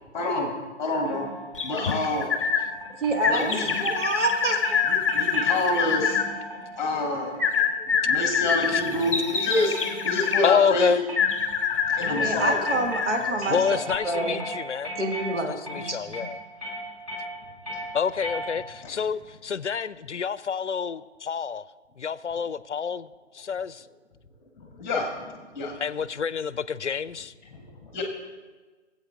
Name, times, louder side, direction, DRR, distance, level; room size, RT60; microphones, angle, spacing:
voice 1, 0.1-0.5 0.8-1.3 1.6-2.4 3.2-3.9 4.9-6.2 6.8-7.4 7.9-9.7 10.0-10.9 11.8-12.8 13.1-13.7 18.8-18.9 24.6-25.8 27.5-28.0, left 2 dB, 10° left, 1.1 m, -28 dB
sound 1, 1.0-18.9, equal, 30° right, 3.8 m, -38 dB
Twittering Bird Sound Effect, 1.5-2.6 3.2-6.3 7.4-10.5 11.2-13.4 13.9-14.0, left 6 dB, 25° left, 0.9 m, -26 dB
voice 2, 3.0-3.5 3.8-4.8 12.0-13.8 14.0-14.4 15.0-16.3, right 2 dB, 70° right, 1.8 m, -27 dB
voice 3, 10.4-11.0 13.5-14.9 15.5-16.4 17.9-21.7 22.0-23.1 23.3-23.9 25.8-27.3, left 6 dB, 70° left, 0.5 m, -27 dB
18.5 x 8.0 x 3.6 m
figure-of-eight pair, 145°, 36 cm